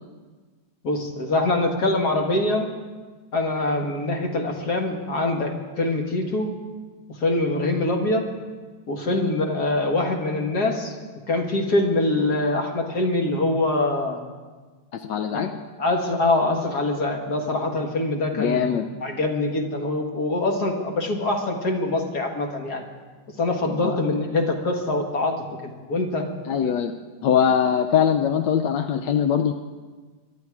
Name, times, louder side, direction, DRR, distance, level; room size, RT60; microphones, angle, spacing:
voice 1, 0.8-2.7 3.3-6.5 7.1-8.2 8.9-11.0 11.3-14.2 15.3-15.5 15.8-22.8 23.4-25.4 25.7-26.2, left 2 dB, 60° left, 2 dB, 2.1 m, -24 dB
voice 2, 14.9-15.5 18.4-18.8 23.8-24.0 26.5-26.9 27.2-29.5, left 8 dB, 75° left, 7 dB, 1.3 m, -22 dB
23.0 x 12.0 x 4.8 m, 1.4 s
omnidirectional pair, 2.0 m